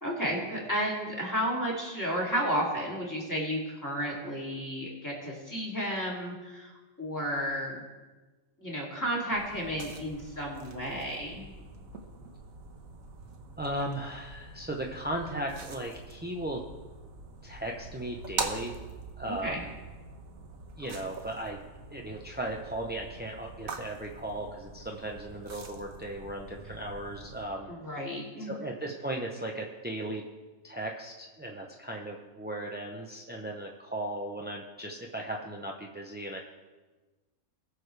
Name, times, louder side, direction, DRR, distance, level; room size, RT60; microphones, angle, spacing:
voice 1, 0.0-7.8 8.6-11.5 19.2-19.6 27.7-28.5, equal, 15° left, -5 dB, 2.7 m, -32 dB
sound 1, 9.3-27.4, right 4 dB, 85° right, 1.5 m, -44 dB
voice 2, 13.6-16.6 17.4-18.7 19.2-19.7 20.8-21.6 21.9-27.7 28.4-30.2 30.6-36.4, right 1 dB, 10° right, 0 dB, 0.5 m, -36 dB
19.5 x 6.6 x 3.3 m, 1.2 s
omnidirectional pair, 1.4 m